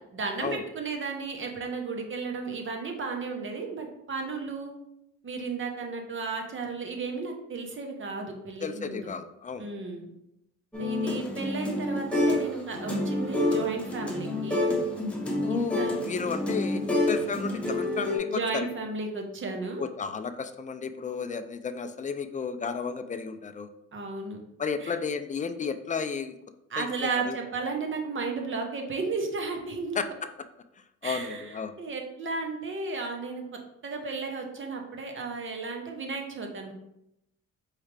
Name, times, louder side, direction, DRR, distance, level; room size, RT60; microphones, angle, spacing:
voice 1, 0.1-4.7 5.2-9.1 9.6-10.1 10.8-14.6 15.5-16.0 18.3-19.8 23.9-24.4 24.8-24.9 26.7-30.1 31.0-33.4 33.8-36.7, right 4 dB, 40° right, 3 dB, 1.0 m, -34 dB
voice 2, 8.6-9.7 15.4-18.7 19.8-23.7 24.6-26.3 26.8-27.4 30.0-30.1 31.0-31.7, left 5 dB, 25° left, 9 dB, 0.3 m, -33 dB
sound 1, 10.7-12.5 12.7-18.2, left 1 dB, 5° left, 1.1 m, -28 dB
4.7 x 3.2 x 3.3 m, 0.83 s
cardioid pair, 90°, 30 cm